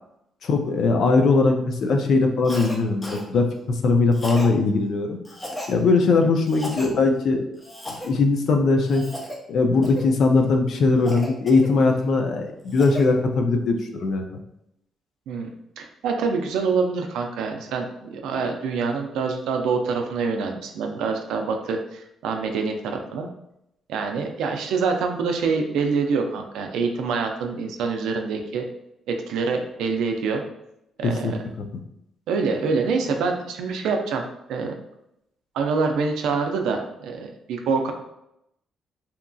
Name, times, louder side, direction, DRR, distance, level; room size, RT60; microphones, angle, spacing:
voice 1, 0.4-5.2 5.7-7.4 8.0-9.0 9.5-14.2 31.0-31.7, left 3 dB, 65° left, 4 dB, 0.4 m, -20 dB
Cough, 2.4-2.8 3.0-3.3 4.1-4.5 5.2-5.7 6.5-6.9 7.6-8.1 8.8-9.4 9.8-10.1 11.0-12.0 12.5-13.1, left 1 dB, 15° left, 0.6 m, -35 dB
voice 2, 15.8-23.3 23.9-28.6 29.1-30.4 31.0-31.4 32.3-34.7 35.5-37.9, right 4 dB, 85° right, 3 dB, 0.4 m, -26 dB
2.8 x 2.5 x 2.3 m, 0.80 s
cardioid pair, 90°, 0 cm